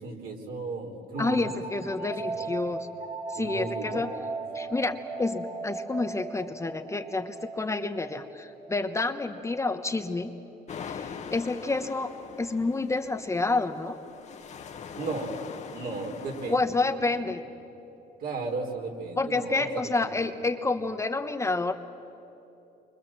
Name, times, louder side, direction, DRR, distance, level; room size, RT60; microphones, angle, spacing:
voice 1, 0.0-1.5 2.0-2.5 3.4-4.0 15.0-15.4 15.7-16.7 17.0-17.2 18.2-20.1, right 3 dB, 60° right, 2 dB, 3.8 m, -35 dB
voice 2, 1.2-2.9 3.3-4.1 4.5-10.3 10.9-12.1 12.4-14.0 16.5-17.4 19.2-21.8, left 3 dB, 15° left, 7 dB, 1.0 m, -29 dB
sound 1, 1.2-10.5, right 3 dB, 35° right, 1.9 m, -38 dB
sound 2, 10.7-16.5, left 6 dB, 45° left, 1.4 m, -42 dB
29.0 x 24.5 x 7.5 m, 3.0 s
cardioid pair, 110°, 17 cm